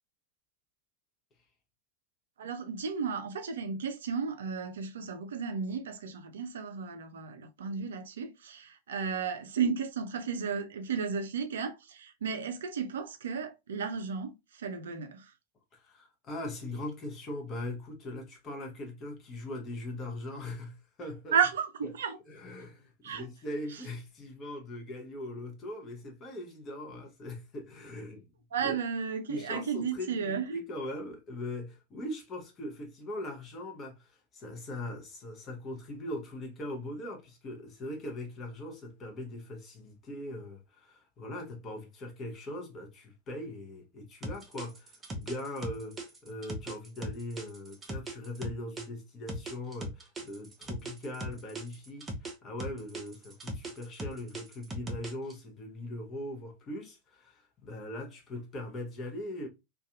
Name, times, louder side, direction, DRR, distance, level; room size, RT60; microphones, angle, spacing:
voice 1, 2.4-15.3 21.3-22.2 23.0-23.3 23.7-23.8 28.5-30.5, right 6 dB, 65° right, 0.4 m, -33 dB
voice 2, 15.7-21.4 22.3-28.3 28.6-28.8 29.3-59.5, left 1 dB, 30° left, 0.7 m, -40 dB
sound 1, 44.2-48.9 49.3-52.3 52.6-55.3, right 1 dB, 20° right, 0.6 m, -38 dB
2.6 x 2.3 x 2.3 m
figure-of-eight pair, 90°, 0 cm